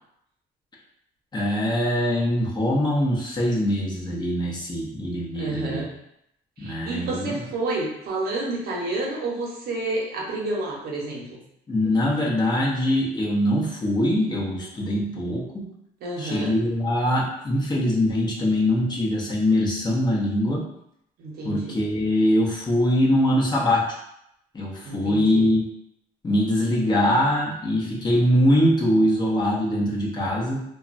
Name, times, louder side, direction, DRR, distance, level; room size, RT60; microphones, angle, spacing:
voice 1, 1.3-5.8 6.6-7.4 11.7-15.7 16.2-20.6 21.4-23.8 24.5-25.6 26.2-30.6, left 1 dB, 25° left, -4 dB, 0.7 m, -22 dB
voice 2, 5.3-5.8 6.6-11.4 16.0-16.5 21.2-21.8 24.8-25.5, right 2 dB, 70° right, -3 dB, 0.8 m, -30 dB
2.9 x 2.2 x 2.5 m, 0.78 s
cardioid pair, 110°, 17 cm